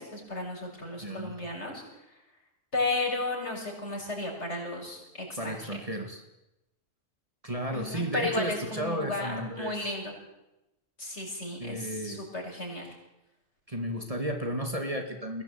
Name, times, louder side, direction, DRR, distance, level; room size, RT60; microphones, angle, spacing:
voice 1, 0.0-1.8 2.7-5.8 7.7-10.1 11.0-12.9, left 2 dB, 55° left, 0 dB, 6.9 m, -34 dB
voice 2, 1.0-1.4 5.4-6.2 7.4-9.8 11.6-12.2 13.7-15.4, equal, 25° right, 4 dB, 2.5 m, -33 dB
23.0 x 17.0 x 8.8 m, 0.92 s
omnidirectional pair, 1.4 m